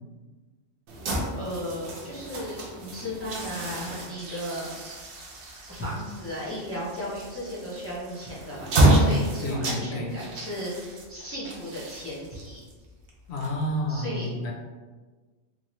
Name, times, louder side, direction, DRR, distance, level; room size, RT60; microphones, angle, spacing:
sound 1, 0.9-13.9, right 1 dB, 65° right, 0.9 m, -29 dB
voice 1, 1.3-4.7 5.7-12.6 13.9-14.4, equal, 15° left, -8 dB, 0.5 m, -35 dB
voice 2, 9.4-10.1 13.3-14.5, left 1 dB, 65° left, -1 dB, 0.8 m, -30 dB
3.1 x 2.3 x 3.0 m, 1.3 s
omnidirectional pair, 1.3 m